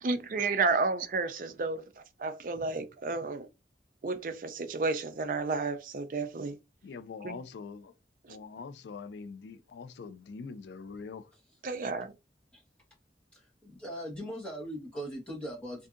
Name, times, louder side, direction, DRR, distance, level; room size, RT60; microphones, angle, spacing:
voice 1, 0.0-3.5 4.0-6.6 7.2-7.4 8.2-8.4 11.6-12.1, right 3 dB, 50° right, 0.4 m, -32 dB
voice 2, 6.8-7.9 8.3-11.3, left 5 dB, 80° left, 0.4 m, -43 dB
voice 3, 13.3-15.9, equal, 5° left, 1.1 m, -40 dB
2.6 x 2.5 x 2.4 m
head